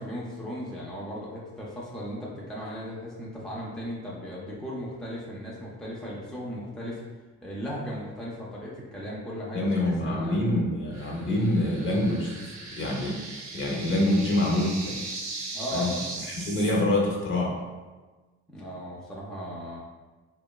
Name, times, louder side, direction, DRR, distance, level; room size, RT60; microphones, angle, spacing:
voice 1, 0.0-7.0 7.4-10.4 15.5-16.1 18.5-19.8, equal, ahead, -5 dB, 0.4 m, -36 dB
voice 2, 9.5-13.2 13.5-15.0 15.7-16.0 16.2-17.6, left 1 dB, 40° left, -2 dB, 0.7 m, -26 dB
sound 1, 10.9-16.8, right 3 dB, 65° right, 0.6 m, -38 dB
2.8 x 2.2 x 2.2 m, 1.3 s
cardioid pair, 90°, 30 cm